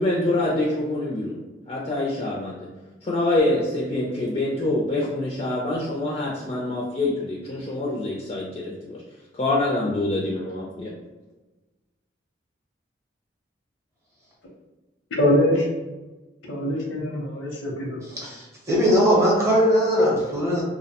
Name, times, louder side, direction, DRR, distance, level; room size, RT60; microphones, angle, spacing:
voice 1, 0.0-1.4 1.7-2.6 3.0-8.7 9.4-10.9, left 2 dB, 30° left, -4 dB, 0.3 m, -25 dB
voice 2, 15.1-15.7 16.4-18.3, left 1 dB, 80° left, -1 dB, 0.6 m, -23 dB
voice 3, 18.2-20.6, equal, 15° right, -4 dB, 0.6 m, -20 dB
2.5 x 2.0 x 2.8 m, 1.1 s
head